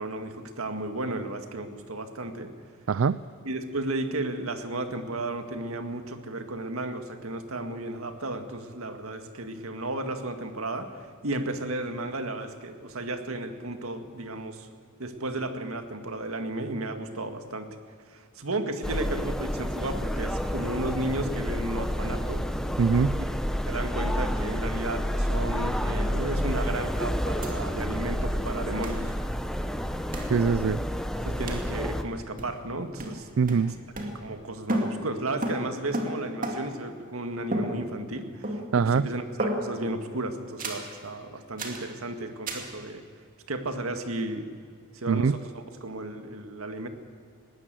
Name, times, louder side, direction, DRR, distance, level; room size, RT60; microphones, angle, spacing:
voice 1, 0.0-2.5 3.4-14.7 15.0-17.7 18.1-22.5 23.2-23.3 23.7-29.1 31.2-33.3 33.6-33.7 34.1-43.0 43.5-44.5 44.9-46.9, right 2 dB, 85° right, 7 dB, 1.9 m, -34 dB
voice 2, 2.9-3.2 22.8-23.2 30.3-30.8 33.4-33.7 38.7-39.1 45.1-45.4, right 5 dB, 65° right, 16 dB, 0.4 m, -23 dB
sound 1, 18.8-32.0, equal, 5° left, 0.9 m, -29 dB
sound 2, 27.4-27.5 27.8-27.9 28.8-29.0 30.1-30.4 31.5-31.7 32.4-32.7 33.0-34.4 34.7-36.9 37.5-38.2 38.4-38.9 39.4-39.9 40.6-40.9 41.6-41.9 42.5-42.7, right 1 dB, 40° right, 2.6 m, -33 dB
20.5 x 17.5 x 7.7 m, 2.2 s
head